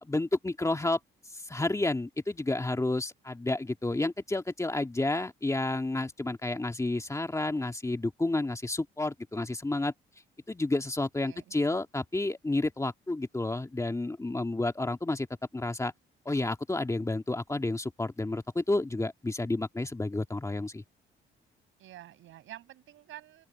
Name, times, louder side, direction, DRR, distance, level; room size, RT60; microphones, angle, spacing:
voice 1, 0.0-1.0 1.4-9.9 10.5-15.3 15.5-15.9 16.3-20.8, left 2 dB, 15° left, 2.0 m, -30 dB
voice 2, 11.2-11.6 21.8-23.5, right 13 dB, 85° right, 7.5 m, -48 dB
open air
cardioid pair, 90°, 20 cm